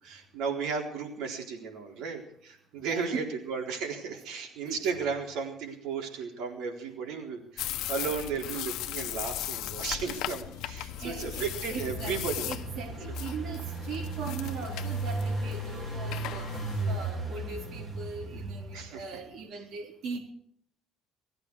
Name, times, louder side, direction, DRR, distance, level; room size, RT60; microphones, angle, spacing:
voice 1, 0.0-12.5 18.7-19.0, right 5 dB, 80° right, 1 dB, 4.1 m, -34 dB
voice 2, 2.8-3.2 4.1-4.2 4.6-4.8 10.5-10.6 11.0-20.2, right 5 dB, 60° right, 0 dB, 4.0 m, -40 dB
sound 1, 7.6-17.1, left 14 dB, 80° left, 0.8 m, -38 dB
Engine, 11.0-19.1, right 2 dB, 25° right, 3.6 m, -36 dB
20.5 x 14.5 x 4.9 m, 0.68 s
cardioid pair, 165°, 0 cm